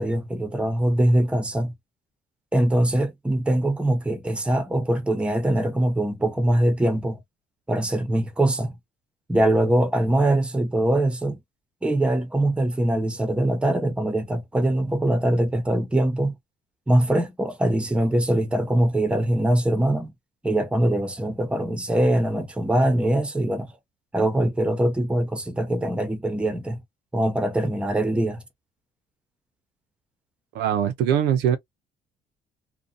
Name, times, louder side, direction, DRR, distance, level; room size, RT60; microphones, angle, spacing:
voice 1, 0.0-1.7 2.5-7.2 7.7-8.7 9.3-11.4 11.8-16.3 16.9-20.1 20.4-23.7 24.1-26.8 27.1-28.4, right 1 dB, 5° right, 0.6 m, -22 dB
voice 2, 30.5-31.6, right 9 dB, 85° right, 0.5 m, -22 dB
2.6 x 2.1 x 2.5 m
cardioid pair, 110°, 17 cm